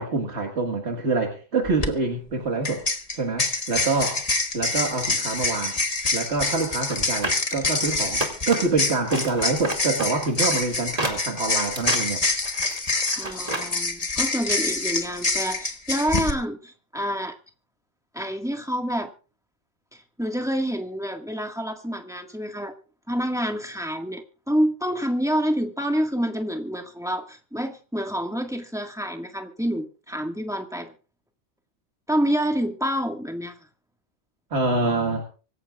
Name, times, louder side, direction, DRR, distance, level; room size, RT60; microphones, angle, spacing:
voice 1, 0.0-2.8 3.1-4.3 4.5-5.8 6.1-12.2 34.5-35.2, right 3 dB, 65° right, 2 dB, 2.1 m, -26 dB
sound 1, 1.6-1.9 2.6-16.3, left 3 dB, 30° left, 1.4 m, -26 dB
sound 2, 6.8-8.8 9.1-13.7 14.0-14.1, right 2 dB, 30° right, 2.5 m, -31 dB
voice 2, 13.2-17.4 18.1-19.1 19.9-22.7 23.1-30.9 32.1-33.6, equal, 5° right, 4 dB, 1.7 m, -27 dB
25.0 x 14.5 x 2.4 m, 0.36 s
omnidirectional pair, 1.2 m